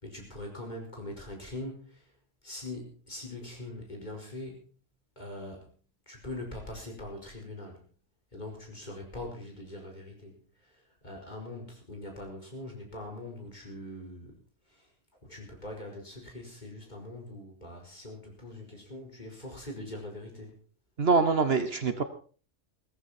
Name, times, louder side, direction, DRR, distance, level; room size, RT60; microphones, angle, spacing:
voice 1, 0.0-2.0 2.4-4.6 5.2-5.7 6.1-7.8 8.3-10.3 10.6-10.7 11.0-14.3 14.7-14.9 15.3-20.6, left 1 dB, 35° left, 0 dB, 5.0 m, -42 dB
voice 2, 21.0-22.0, right 4 dB, 55° right, 10 dB, 1.3 m, -24 dB
17.0 x 14.0 x 4.3 m, 0.41 s
omnidirectional pair, 1.3 m